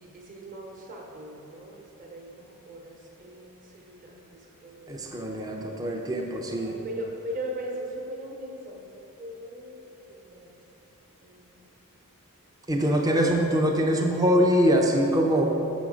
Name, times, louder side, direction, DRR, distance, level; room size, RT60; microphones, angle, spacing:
voice 1, 0.0-5.2 6.5-10.5 11.2-11.7 12.8-13.4 13.8-14.2, right 1 dB, 35° right, 0 dB, 1.0 m, -40 dB
voice 2, 4.9-6.7 12.7-15.4, equal, 15° right, 1 dB, 0.5 m, -23 dB
6.2 x 6.2 x 4.9 m, 3.0 s
head